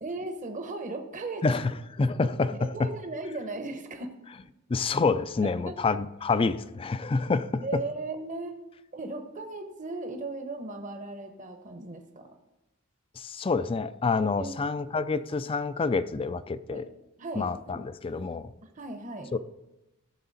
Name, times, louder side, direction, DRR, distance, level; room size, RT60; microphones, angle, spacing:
voice 1, 0.0-1.6 2.6-4.2 5.4-5.8 7.6-8.6 8.9-12.4 14.3-14.7 16.7-16.8 17.2-17.8 18.7-19.3, right 3 dB, 40° right, 6 dB, 0.9 m, -37 dB
voice 2, 1.4-1.7 2.0-2.9 4.7-7.6 13.2-16.8 17.4-18.5 19.3-19.4, left 4 dB, 25° left, 14 dB, 0.4 m, -27 dB
15.0 x 6.8 x 4.1 m, 0.99 s
head